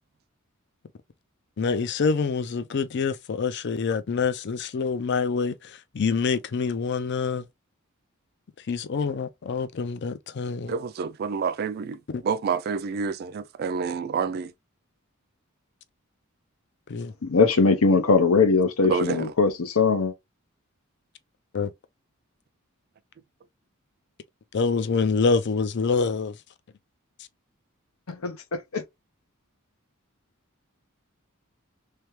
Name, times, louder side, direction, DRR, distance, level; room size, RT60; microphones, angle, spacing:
voice 1, 1.6-7.4 8.7-10.7 12.1-12.2 16.9-17.1 21.5-21.7 24.5-26.4, left 5 dB, 55° left, 0.4 m, -26 dB
voice 2, 10.7-14.5 18.8-19.3, right 5 dB, 45° right, 0.3 m, -28 dB
voice 3, 17.2-20.1 28.1-28.3 28.7-28.8, left 4 dB, 85° left, 0.8 m, -20 dB
3.3 x 3.3 x 3.1 m
head